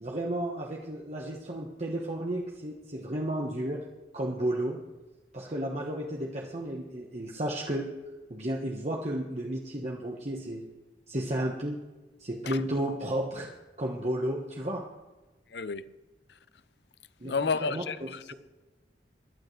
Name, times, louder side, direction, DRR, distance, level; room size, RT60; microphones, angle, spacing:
voice 1, 0.0-3.8 4.1-4.8 5.3-7.9 8.3-10.6 11.1-11.8 12.2-13.5 13.8-14.8 17.2-18.1, right 1 dB, 40° right, 1.3 m, -33 dB
voice 2, 15.5-16.0 16.3-16.4 17.2-18.3, left 5 dB, 75° left, 0.6 m, -32 dB
22.5 x 11.5 x 3.3 m
head